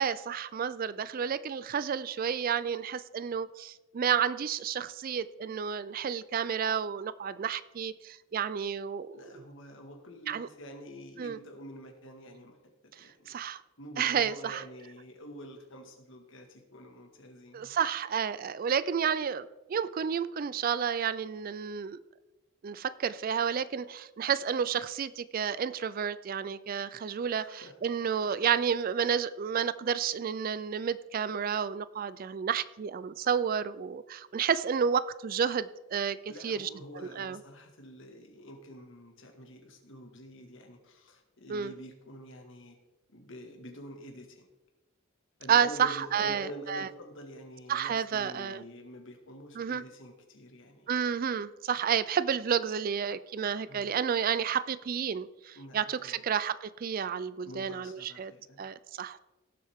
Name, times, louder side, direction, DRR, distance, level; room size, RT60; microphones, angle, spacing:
voice 1, 0.0-9.2 10.3-10.5 11.2-11.4 13.3-13.6 14.0-14.6 17.5-22.0 22.6-36.2 36.4-36.7 37.2-37.4 41.5-41.7 45.5-46.9 47.7-48.6 49.6-49.8 50.9-58.3 58.6-59.2, right 7 dB, 45° right, 16 dB, 0.3 m, -31 dB
voice 2, 9.1-13.4 13.8-17.7 27.3-27.8 28.2-28.4 36.3-42.8 43.1-44.5 45.4-50.9 53.7-54.0 55.6-56.3 57.4-58.6, equal, 60° left, 4 dB, 1.8 m, -47 dB
17.5 x 7.6 x 3.6 m, 1.1 s
head